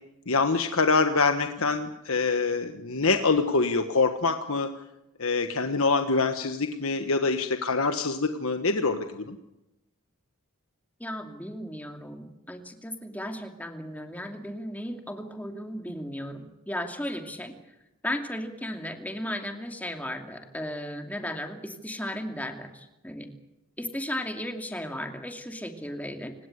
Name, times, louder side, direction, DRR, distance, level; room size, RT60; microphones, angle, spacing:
voice 1, 0.3-4.7 5.2-9.4, left 4 dB, 70° left, 7 dB, 1.4 m, -25 dB
voice 2, 11.0-17.5 18.0-23.3 23.8-26.3, left 1 dB, 5° left, 4 dB, 2.6 m, -35 dB
28.5 x 17.5 x 8.1 m, 0.92 s
head